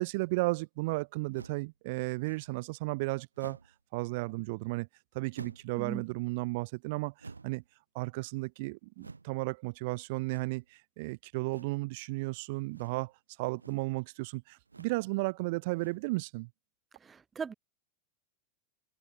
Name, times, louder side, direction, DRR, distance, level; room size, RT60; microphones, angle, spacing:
voice 1, 0.0-3.6 3.9-4.9 5.1-7.1 7.4-7.6 7.9-13.1 13.4-16.5, right 24 dB, 50° right, 0.4 m, -34 dB
sound 1, 1.3-1.7 2.2-2.6 3.3-3.8 5.3-5.8 7.2-7.7 9.0-9.3 10.2-10.7 11.5-11.8 12.7-13.1 13.5-13.9 14.7-15.0 15.7-16.2, right 4 dB, 80° right, 1.2 m, -50 dB
voice 2, 17.0-17.5, right 6 dB, 20° right, 0.7 m, -38 dB
open air
figure-of-eight pair, 90°, 0 cm